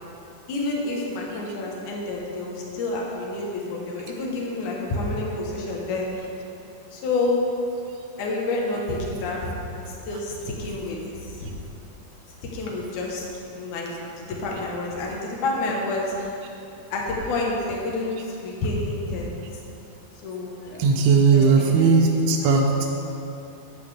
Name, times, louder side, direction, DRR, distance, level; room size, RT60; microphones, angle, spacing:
voice 1, 0.5-6.3 6.9-7.4 8.2-9.5 9.7-11.5 12.5-13.2 13.5-16.3 16.9-19.4 20.2-20.8 21.3-21.9 22.4-22.5, left 2 dB, 70° left, -2 dB, 2.0 m, -29 dB
voice 2, 20.8-22.7, right 5 dB, 80° right, 0 dB, 2.4 m, -17 dB
11.0 x 9.4 x 3.4 m, 2.7 s
omnidirectional pair, 5.0 m